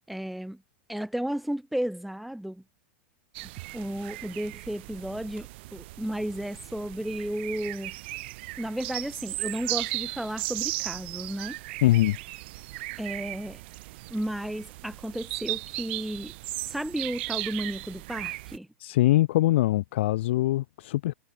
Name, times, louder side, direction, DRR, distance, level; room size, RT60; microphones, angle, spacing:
voice 1, 0.1-0.6 0.9-2.6 3.7-8.0 8.6-11.6 13.0-13.6 14.1-16.3 16.7-18.7, right 1 dB, ahead, 0.4 m, -33 dB
sound 1, 3.3-18.6, right 21 dB, 60° right, 1.5 m, -37 dB
voice 2, 11.8-12.2 18.8-21.1, left 16 dB, 70° left, 0.4 m, -23 dB
hypercardioid pair, 120°, 7 cm